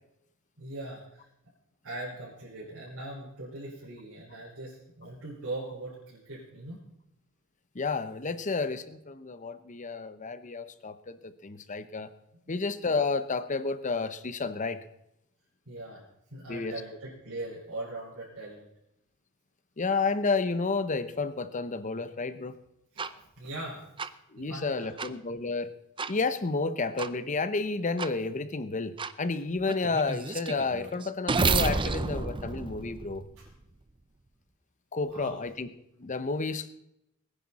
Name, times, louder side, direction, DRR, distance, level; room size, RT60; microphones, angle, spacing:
voice 1, 0.6-1.2 1.8-6.8 15.6-16.0 16.3-18.7 22.9-23.1 23.4-23.8 24.3-25.1 33.4-33.5 35.0-35.4, right 2 dB, 85° right, -9 dB, 4.9 m, -40 dB
voice 2, 7.7-12.1 12.5-14.8 16.5-16.7 19.8-22.6 24.3-25.7 26.1-33.2 34.9-35.7 36.0-36.7, left 4 dB, 35° left, 13 dB, 0.8 m, -31 dB
sound 1, 23.0-23.1 24.0-24.1 25.0-25.1 26.0-26.1 27.0-27.1 28.0-28.1 29.0-29.1 29.7-33.6, right 4 dB, 25° right, 0.5 m, -30 dB
21.5 x 10.0 x 4.2 m, 0.82 s
head